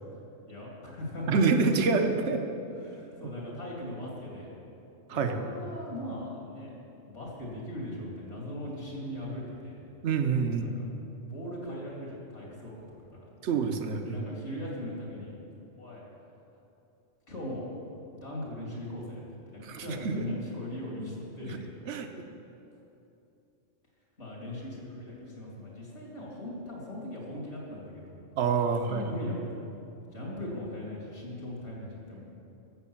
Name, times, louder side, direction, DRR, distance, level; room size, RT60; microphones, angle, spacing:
voice 1, 0.5-1.4 2.7-4.5 5.1-6.7 7.1-9.8 10.6-10.9 11.3-12.9 13.1-13.3 14.0-15.3 15.8-16.0 17.3-17.7 18.1-21.6 24.2-28.2 28.4-29.6 30.1-32.2, left 1 dB, 60° left, -4 dB, 3.4 m, -39 dB
voice 2, 1.3-2.5 5.1-5.5 10.0-10.8 13.4-14.2 19.6-20.3 21.9-22.3 28.4-29.1, right 5 dB, 65° right, 6 dB, 1.1 m, -27 dB
13.0 x 7.8 x 7.2 m, 2.8 s
omnidirectional pair, 1.3 m